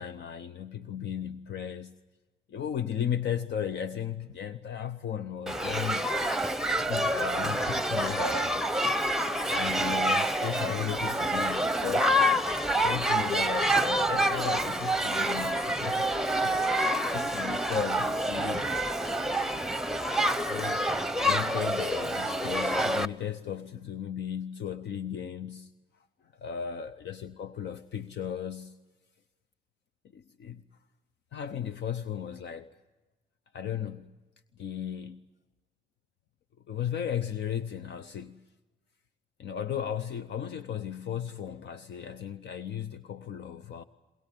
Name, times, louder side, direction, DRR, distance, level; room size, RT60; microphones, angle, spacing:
voice 1, 0.0-2.0 2.5-6.3 6.8-8.6 9.5-12.3 12.8-16.1 16.4-18.7 20.5-20.8 21.2-25.7 26.4-28.8 30.1-30.6 31.3-32.7 33.5-34.1 34.6-35.2 36.7-38.4 39.4-43.8, left 8 dB, 70° left, 0.7 m, -35 dB
Shout / Human group actions, 5.5-23.1, right 1 dB, ahead, 0.9 m, -27 dB
22.0 x 22.0 x 9.0 m
supercardioid pair, 50°, 19 cm